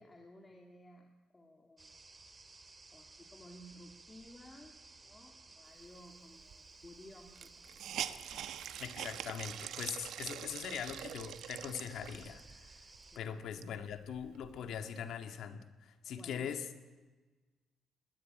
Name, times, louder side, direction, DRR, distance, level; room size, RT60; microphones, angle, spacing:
voice 1, 0.0-2.0 2.9-7.9 8.3-8.8 13.1-13.4 16.1-16.5, left 1 dB, 20° left, 2 dB, 2.7 m, -57 dB
sound 1, 1.8-13.2, right 3 dB, 25° right, 2.4 m, -57 dB
Hiss, 6.5-6.6 6.8-6.9 7.3-12.4 12.9-13.0 13.4-14.8, right 10 dB, 80° right, 1.1 m, -44 dB
voice 2, 8.8-12.8 13.2-16.7, left 8 dB, 75° left, 8 dB, 1.9 m, -42 dB
20.5 x 17.5 x 9.1 m, 1.3 s
cardioid pair, 90°, 0 cm